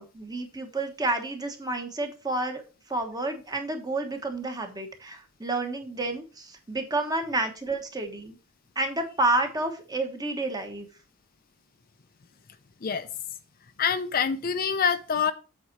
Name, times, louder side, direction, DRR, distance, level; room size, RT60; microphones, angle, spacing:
voice 1, 0.0-2.6 2.9-8.4 8.7-10.9, right 2 dB, 20° right, 1.2 m, -30 dB
voice 2, 13.8-15.3, left 6 dB, 45° left, 0.5 m, -25 dB
8.0 x 4.2 x 6.0 m
head